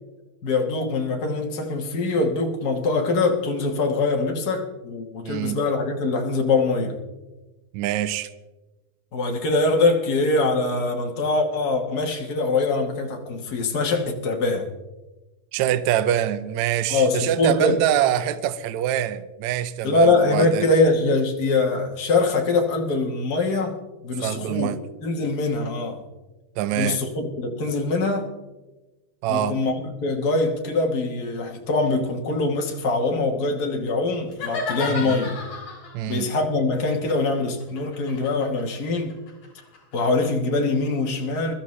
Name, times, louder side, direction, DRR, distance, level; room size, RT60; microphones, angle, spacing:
voice 1, 0.4-7.0 9.1-14.7 16.9-17.8 19.8-23.7 24.0-24.7 25.0-26.0 26.8-28.3 29.3-35.4 36.1-39.2 39.9-41.5, left 3 dB, 90° left, 0.8 m, -23 dB
voice 2, 5.2-5.6 7.7-8.3 15.5-20.7 24.2-24.8 26.6-27.0 29.2-29.6 34.9-35.1 35.9-36.3, right 11 dB, 80° right, 1.7 m, -24 dB
sound 1, 34.3-36.0 36.9-40.0, left 3 dB, 70° left, 5.2 m, -33 dB
22.5 x 13.5 x 3.2 m
omnidirectional pair, 3.9 m